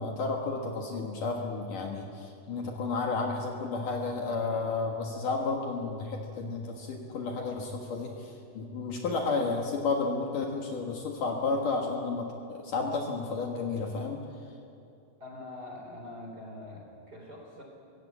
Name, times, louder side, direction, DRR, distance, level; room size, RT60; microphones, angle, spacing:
voice 1, 0.0-14.2, left 3 dB, 60° left, 1 dB, 2.9 m, -32 dB
voice 2, 15.2-17.6, left 2 dB, 25° right, 0 dB, 3.7 m, -44 dB
23.5 x 16.5 x 8.5 m, 2.7 s
omnidirectional pair, 4.7 m